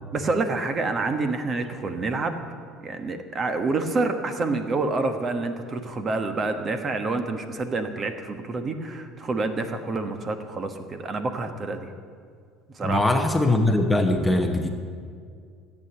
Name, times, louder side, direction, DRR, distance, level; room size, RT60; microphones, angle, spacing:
voice 1, 0.1-2.4 2.8-11.9 12.7-13.1, right 3 dB, 30° right, 7 dB, 1.2 m, -28 dB
voice 2, 12.8-14.7, left 2 dB, 5° left, 4 dB, 1.0 m, -21 dB
14.5 x 8.5 x 8.0 m, 2.1 s
cardioid pair, 120°, 0 cm